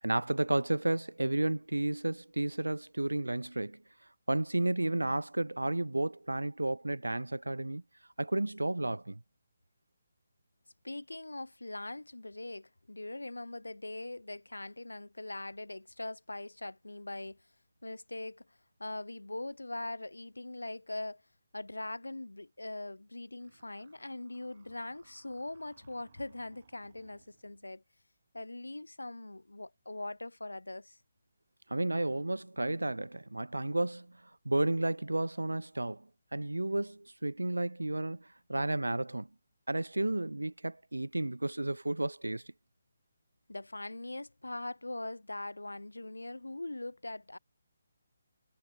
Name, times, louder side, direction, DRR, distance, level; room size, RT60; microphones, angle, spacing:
voice 1, 0.0-3.8 4.3-7.8 8.2-9.2 31.7-39.3 39.7-42.4, right 2 dB, 85° right, 0.3 m, -32 dB
voice 2, 10.8-17.5 17.8-21.2 21.5-27.8 28.3-31.0 43.5-47.4, left 2 dB, 85° left, 2.7 m, -41 dB
sound 1, 23.4-27.7, right 7 dB, 45° right, 6.6 m, -65 dB
figure-of-eight pair, 145°, 0 cm